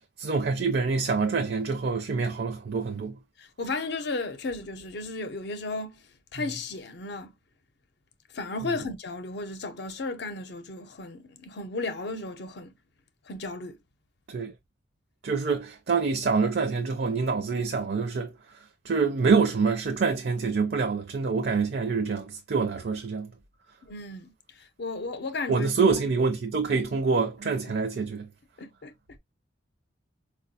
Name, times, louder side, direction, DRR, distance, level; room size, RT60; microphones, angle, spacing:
voice 1, 0.2-3.1 14.3-14.5 15.2-18.3 18.9-23.3 25.5-28.3, right 4 dB, 55° right, 0.5 m, -26 dB
voice 2, 3.4-6.0 6.3-7.3 8.3-12.7 13.3-13.8 23.8-25.7 27.4-27.7 28.6-28.9, left 3 dB, 60° left, 0.6 m, -34 dB
4.3 x 2.3 x 2.6 m
head